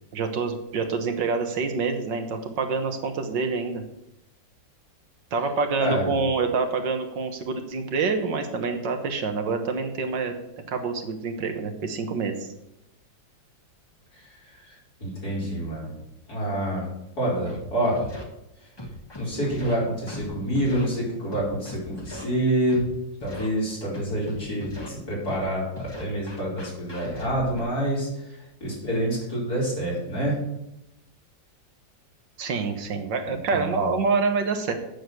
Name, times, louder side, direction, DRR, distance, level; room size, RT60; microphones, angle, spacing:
voice 1, 0.1-3.8 5.3-10.3 10.7-12.5 32.4-34.7, right 4 dB, 75° right, 5 dB, 1.9 m, -26 dB
voice 2, 14.2-15.9 16.3-16.8 17.2-18.1 19.2-22.9 23.2-30.4 33.5-33.8, right 1 dB, 55° left, -6 dB, 5.1 m, -27 dB
Scratching (performance technique), 17.5-17.6 18.0-18.2 18.8-19.7 20.1-20.3 20.6-20.9 21.3-22.2 22.7-22.8 23.2-23.5 23.9-24.9 25.3-25.4 25.8-27.6, left 1 dB, 15° left, 1.3 m, -38 dB
8.7 x 6.5 x 7.8 m, 0.85 s
omnidirectional pair, 2.0 m